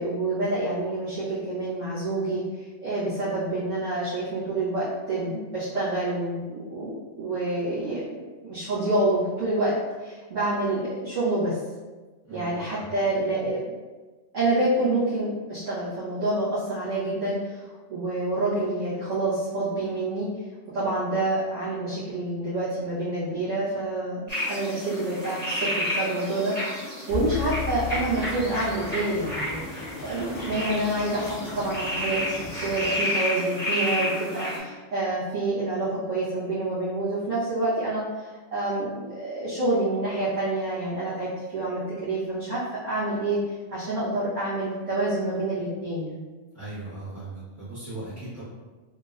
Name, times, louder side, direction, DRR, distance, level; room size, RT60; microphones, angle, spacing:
voice 1, 0.0-2.4 2.8-9.7 10.0-11.6 12.3-13.7 14.3-20.3 20.7-29.6 30.0-43.4 43.7-46.2, right 2 dB, 75° right, -14 dB, 1.5 m, -27 dB
voice 2, 12.3-12.8 46.5-48.4, right 2 dB, 15° left, -13 dB, 1.1 m, -38 dB
sound 1, 24.3-34.6, left 1 dB, 25° right, 1.6 m, -31 dB
sound 2, 27.1-29.2, left 6 dB, 10° right, 0.6 m, -33 dB
sound 3, 27.8-32.9, left 1 dB, 85° left, 1.0 m, -41 dB
3.5 x 2.7 x 2.5 m, 1.3 s
omnidirectional pair, 1.3 m